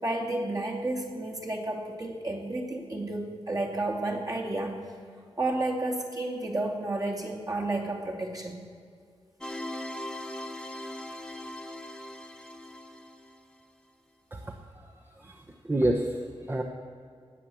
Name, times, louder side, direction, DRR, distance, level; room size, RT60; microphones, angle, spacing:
voice 1, 0.0-4.8 5.4-8.6, right 2 dB, 40° right, -1 dB, 2.5 m, -31 dB
sound 1, 9.4-13.6, left 1 dB, 10° left, 0.8 m, -40 dB
voice 2, 14.9-16.2 16.5-16.6, right 1 dB, 20° right, 1 dB, 1.0 m, -29 dB
18.5 x 8.3 x 7.7 m, 2.3 s
wide cardioid pair, 130°, 10 cm